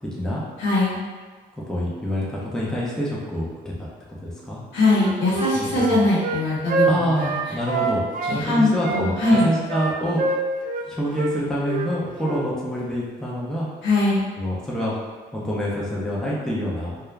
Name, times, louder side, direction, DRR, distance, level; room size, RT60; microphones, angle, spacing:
voice 1, 0.0-0.4 1.5-3.9 4.2-4.6 5.5-6.0 6.9-10.2 10.8-13.7 14.3-15.0 15.3-17.0, equal, 5° left, -6 dB, 0.6 m, -27 dB
voice 2, 0.6-1.0 4.7-7.3 8.3-9.5 13.8-14.2, left 2 dB, 70° left, -6 dB, 1.0 m, -21 dB
Wind instrument woodwind instrument, 4.9-8.4 8.8-10.9 11.1-11.3 11.6-11.9 12.2-12.4, right 4 dB, 40° right, 0.4 m, -25 dB
2.4 x 2.0 x 3.2 m, 1.4 s
cardioid pair, 90°, 20 cm